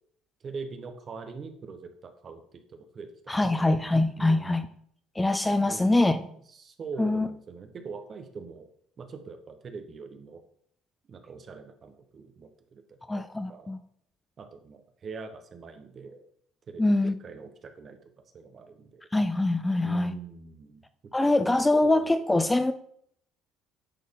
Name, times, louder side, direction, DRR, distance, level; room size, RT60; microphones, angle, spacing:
voice 1, 0.4-3.8 4.2-4.7 5.6-6.1 6.5-8.7 9.0-10.4 11.1-13.8 14.4-16.2 16.7-16.9 17.2-19.0 19.8-20.8 21.3-22.0, right 4 dB, 40° right, 6 dB, 1.1 m, -43 dB
voice 2, 3.3-4.6 5.2-6.2 7.0-7.3 13.1-13.8 16.8-17.1 19.1-20.1 21.1-22.7, left 2 dB, 10° left, 11 dB, 0.4 m, -24 dB
10.0 x 4.2 x 3.7 m, 0.66 s
supercardioid pair, 95°, 0 cm